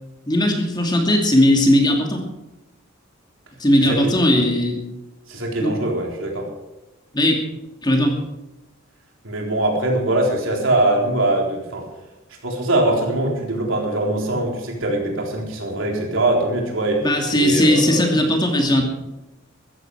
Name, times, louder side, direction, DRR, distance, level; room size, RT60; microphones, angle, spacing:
voice 1, 0.3-2.2 3.6-4.8 5.6-5.8 7.1-7.4 7.8-8.2 17.0-18.8, left 1 dB, 20° left, 2 dB, 2.6 m, -18 dB
voice 2, 3.8-4.1 5.3-6.5 9.2-11.9 12.4-18.2, right 1 dB, 70° right, 0 dB, 4.0 m, -22 dB
15.5 x 14.0 x 4.9 m, 1.0 s
head